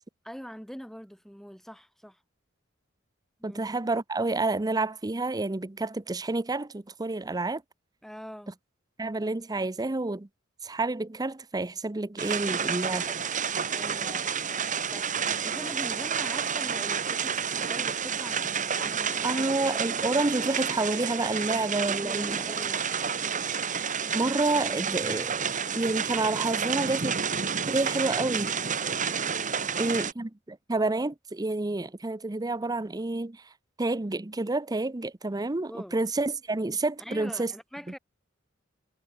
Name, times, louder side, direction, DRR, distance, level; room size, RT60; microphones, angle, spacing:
voice 1, 0.2-2.2 3.4-3.6 8.0-8.5 13.7-19.5 21.9-23.1 29.3-30.0 35.7-36.0 37.0-38.0, equal, ahead, 3.1 m, -44 dB
voice 2, 3.4-7.6 9.0-10.3 10.6-13.0 19.2-22.5 24.1-25.4 25.7-27.1 27.7-28.5 29.8-33.4 33.8-37.5, right 2 dB, 20° right, 0.6 m, -29 dB
sound 1, 12.2-30.1, right 6 dB, 40° right, 2.3 m, -30 dB
head